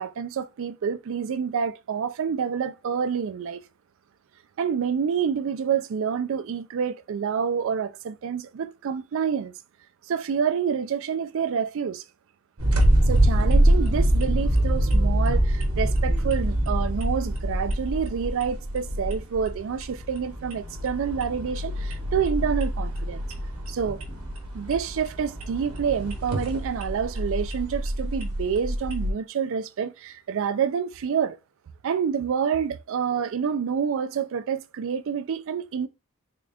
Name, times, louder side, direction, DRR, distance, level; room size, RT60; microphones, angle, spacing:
voice 1, 0.0-3.6 4.6-9.5 10.1-12.0 13.1-23.2 23.7-24.0 24.5-31.4 31.8-35.9, right 7 dB, 65° right, 0.4 m, -28 dB
sound 1, 12.6-29.1, right 1 dB, 80° right, 0.9 m, -25 dB
3.7 x 3.4 x 2.3 m
head